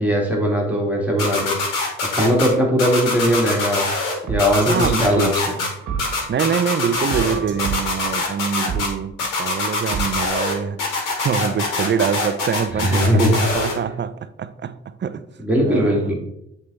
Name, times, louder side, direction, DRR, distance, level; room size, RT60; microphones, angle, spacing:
voice 1, 0.0-1.6 2.1-3.8 4.3-5.6 12.8-13.3 15.4-16.2, equal, 5° right, 2.1 m, -19 dB
sound 1, 1.2-2.5 2.8-4.1 4.4-5.7 6.0-7.3 7.6-8.9 9.2-10.5 10.8-13.7, left 3 dB, 70° left, 2.0 m, -23 dB
sound 2, 3.7-3.8 4.3-6.6 6.9-8.1 8.7-8.8 9.4-9.5 9.9-10.3, right 6 dB, 65° right, 1.3 m, -29 dB
voice 2, 4.6-5.4 6.3-15.3 15.6-16.1, right 7 dB, 35° right, 0.5 m, -25 dB
7.6 x 3.7 x 4.1 m
hypercardioid pair, 50°, 32 cm